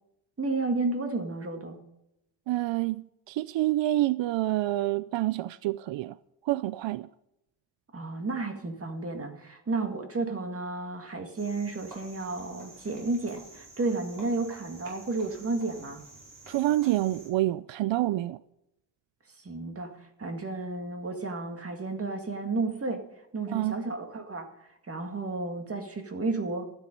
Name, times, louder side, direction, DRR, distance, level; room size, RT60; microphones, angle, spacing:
voice 1, 0.4-1.8 7.9-16.1 19.4-23.1 23.3-26.6, right 3 dB, 30° right, 2.0 m, -32 dB
voice 2, 2.5-6.2 6.4-7.1 16.5-18.4 23.5-23.8, right 16 dB, 80° right, 0.5 m, -27 dB
Cricket, 11.4-17.3, right 2 dB, 45° right, 5.4 m, -49 dB
12.5 x 10.0 x 5.3 m
wide cardioid pair, 125°, 44 cm